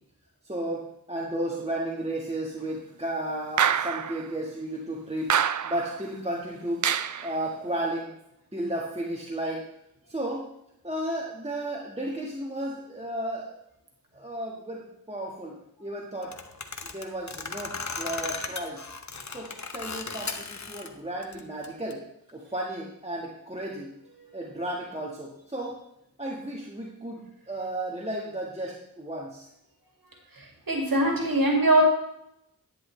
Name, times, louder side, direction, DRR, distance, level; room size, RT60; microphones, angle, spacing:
voice 1, 0.4-5.3 5.6-6.9 7.2-8.1 8.5-9.6 10.1-10.5 10.8-13.5 14.1-16.3 16.8-18.8 19.3-22.0 22.3-23.9 24.3-25.7 26.2-29.5, right 1 dB, 15° right, -3 dB, 1.5 m, -33 dB
sound 1, 3.6-4.2 5.3-6.0 6.8-7.3, right 8 dB, 60° right, 0.4 m, -25 dB
sound 2, 16.2-20.9 21.2-21.9, left 4 dB, 50° left, 0.9 m, -36 dB
voice 2, 30.4-31.8, right 1 dB, 75° right, 0 dB, 2.3 m, -22 dB
10.5 x 9.7 x 3.2 m, 0.80 s
wide cardioid pair, 70°, 35 cm